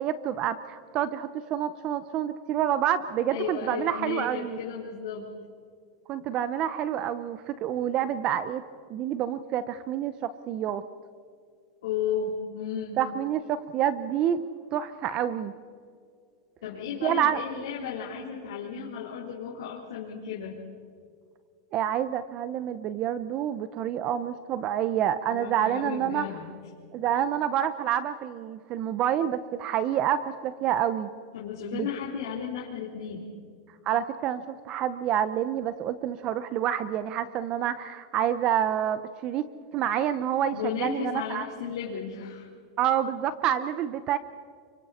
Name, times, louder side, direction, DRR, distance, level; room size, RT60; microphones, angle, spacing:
voice 1, 0.0-4.6 6.1-8.6 8.9-10.8 13.0-14.4 14.7-15.5 17.0-17.4 21.7-26.4 26.9-31.1 31.7-31.9 33.9-39.4 39.7-41.5 42.8-44.2, right 10 dB, 35° right, 13 dB, 0.7 m, -28 dB
voice 2, 3.3-5.3 11.8-13.0 16.6-20.6 25.3-26.5 31.3-33.3 40.5-42.5, left 7 dB, 80° left, -5 dB, 4.0 m, -34 dB
29.5 x 25.0 x 4.3 m, 2.1 s
supercardioid pair, 155°, 3 cm